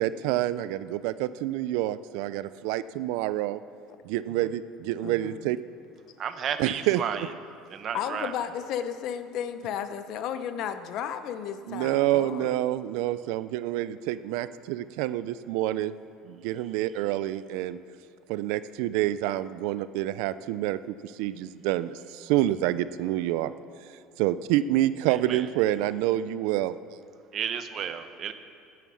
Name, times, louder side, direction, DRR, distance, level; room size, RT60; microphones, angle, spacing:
voice 1, 0.0-3.6 4.1-5.6 6.6-7.0 11.7-15.9 16.3-17.8 18.3-23.5 24.2-26.7, right 14 dB, 65° right, 0.4 m, -27 dB
voice 2, 5.0-5.5 7.9-12.6, left 8 dB, 40° left, 0.7 m, -33 dB
voice 3, 6.2-7.3 7.7-8.3 25.3-25.4 27.3-28.3, right 8 dB, 30° right, 0.8 m, -32 dB
16.5 x 9.2 x 6.3 m
cardioid pair, 180°, 0 cm